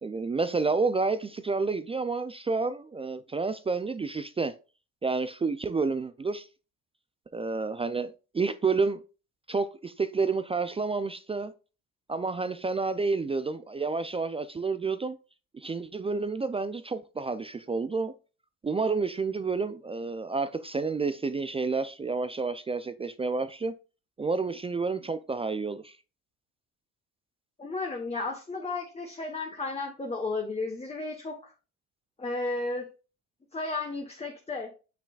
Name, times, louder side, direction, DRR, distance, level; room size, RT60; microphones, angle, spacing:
voice 1, 0.0-4.5 5.0-6.5 7.3-9.0 9.5-11.5 12.1-15.2 15.5-18.1 18.6-23.7 24.2-26.0, right 4 dB, 15° right, 0.4 m, -29 dB
voice 2, 27.6-31.5 32.2-32.9 33.5-34.7, left 3 dB, 20° left, 1.2 m, -33 dB
6.7 x 5.8 x 2.4 m
cardioid pair, 95°, 34 cm